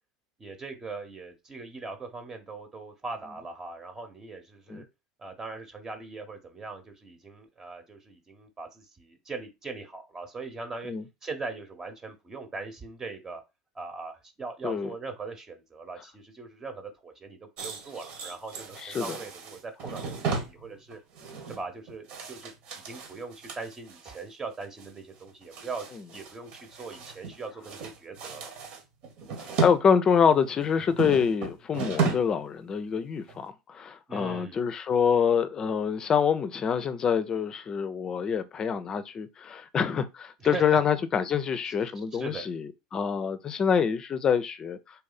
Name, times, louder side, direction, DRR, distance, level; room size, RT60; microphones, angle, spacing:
voice 1, 0.4-4.8 5.2-10.9 11.2-13.4 13.7-21.0 21.5-25.9 26.1-28.5 34.1-34.6 40.4-40.6 41.7-41.8 42.1-42.5, right 3 dB, 25° right, 1.1 m, -40 dB
voice 2, 14.6-14.9 18.8-19.2 29.4-44.8, left 7 dB, 35° left, 0.6 m, -26 dB
sound 1, 17.6-24.2 24.6-24.9 25.1-27.4 27.6-29.8 30.1-32.4 32.7-32.9 33.3-33.4, right 5 dB, 60° right, 1.4 m, -35 dB
4.1 x 2.6 x 4.0 m
hypercardioid pair, 90°, 2 cm